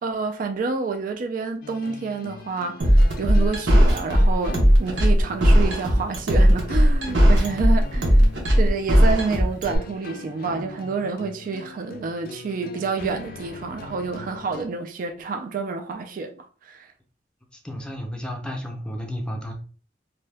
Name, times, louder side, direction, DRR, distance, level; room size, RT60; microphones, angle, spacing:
voice 1, 0.0-8.1 8.6-16.9, right 4 dB, 50° right, 0.3 m, -28 dB
sound 1, 1.6-14.7, left 3 dB, 55° left, 0.4 m, -41 dB
sound 2, 2.8-9.8, equal, 85° right, 0.9 m, -16 dB
voice 2, 17.6-19.5, equal, 5° left, 0.6 m, -32 dB
2.7 x 2.2 x 3.3 m
head